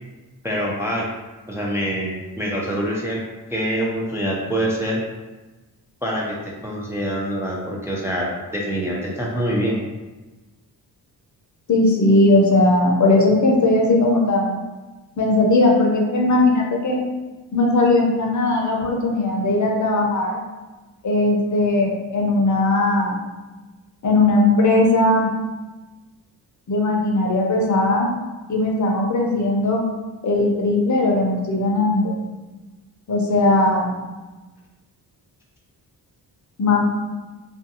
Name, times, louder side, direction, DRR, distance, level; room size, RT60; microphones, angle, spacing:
voice 1, 0.4-1.1 1.5-3.2 3.5-5.0 6.0-9.8, equal, 5° right, -3 dB, 0.4 m, -25 dB
voice 2, 11.7-14.6 15.2-17.0 17.5-20.4 21.0-23.2 24.0-25.3 26.7-28.1 28.5-29.8 30.2-32.2 33.1-33.9 36.6-36.9, left 2 dB, 45° left, 0 dB, 0.6 m, -18 dB
2.5 x 2.2 x 2.6 m, 1.2 s
cardioid pair, 60°, 42 cm